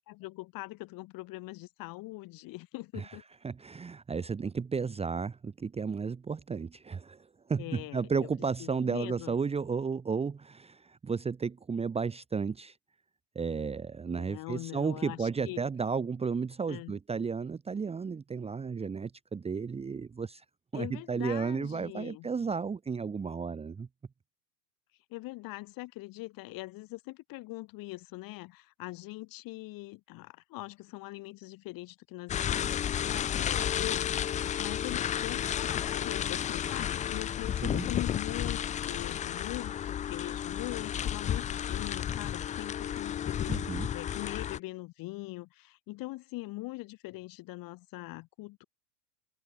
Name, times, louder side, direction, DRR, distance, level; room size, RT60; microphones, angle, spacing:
voice 1, 0.0-3.2 7.6-8.3 8.6-9.3 14.1-15.6 16.7-17.0 20.7-22.3 25.1-34.3 34.6-48.6, left 21 dB, 40° left, 5.1 m, -42 dB
voice 2, 3.4-12.8 13.3-20.4 20.7-23.9 37.6-37.9 43.5-43.9, right 5 dB, 10° right, 1.4 m, -33 dB
sound 1, 32.3-44.6, left 9 dB, 15° left, 0.6 m, -32 dB
hypercardioid pair, 110°, 49 cm